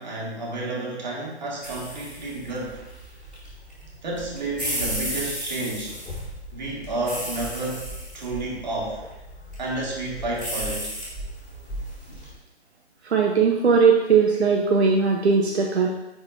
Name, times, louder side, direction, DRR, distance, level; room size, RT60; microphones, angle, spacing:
voice 1, 0.0-2.8 4.0-6.0 6.5-7.9 8.1-9.0 9.6-10.9, right 2 dB, 40° right, -3 dB, 1.7 m, -30 dB
sound 1, 1.6-12.3, equal, ahead, 0.6 m, -34 dB
voice 2, 13.1-15.9, right 5 dB, 70° right, 0 dB, 0.8 m, -19 dB
10.5 x 4.0 x 2.6 m, 0.99 s
hypercardioid pair, 175°, 33 cm